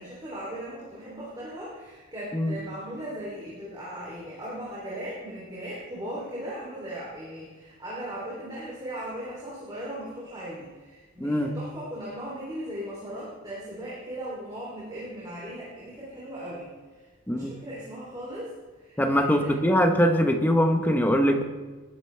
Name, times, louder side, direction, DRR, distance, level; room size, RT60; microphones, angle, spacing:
voice 1, 0.0-16.7 16.9-18.5 18.8-19.6, right 1 dB, 20° right, -7 dB, 3.1 m, -38 dB
voice 2, 19.0-21.4, equal, 10° left, 5 dB, 1.0 m, -22 dB
19.0 x 11.0 x 3.4 m, 1.3 s
head